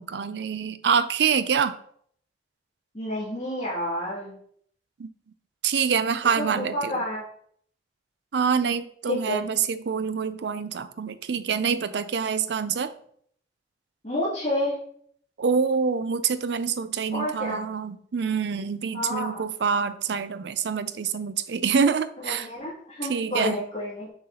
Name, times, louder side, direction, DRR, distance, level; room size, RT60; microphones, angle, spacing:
voice 1, 0.0-1.8 5.0-5.1 5.6-7.0 8.3-12.9 15.4-22.5 23.1-23.6, right 6 dB, 70° right, 13 dB, 0.5 m, -26 dB
voice 2, 2.9-4.4 6.4-7.2 9.0-9.4 14.0-14.8 17.1-17.6 18.9-19.4 22.2-24.1, left 1 dB, 40° left, -7 dB, 2.6 m, -29 dB
6.4 x 5.7 x 2.9 m, 0.62 s
head